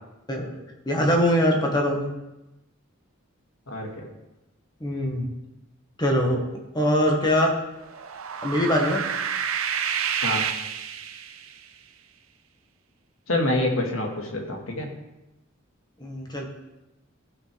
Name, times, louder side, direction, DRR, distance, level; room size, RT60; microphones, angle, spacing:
voice 1, 0.8-2.1 4.8-5.2 6.0-6.4 6.7-7.5 8.4-9.0 16.0-16.5, equal, 20° left, 0 dB, 1.6 m, -22 dB
voice 2, 3.7-4.1 10.2-10.5 13.3-14.9, left 1 dB, 80° left, 1 dB, 1.9 m, -26 dB
sound 1, 7.8-11.6, right 7 dB, 80° right, 0.7 m, -29 dB
15.0 x 6.3 x 3.5 m, 0.96 s
head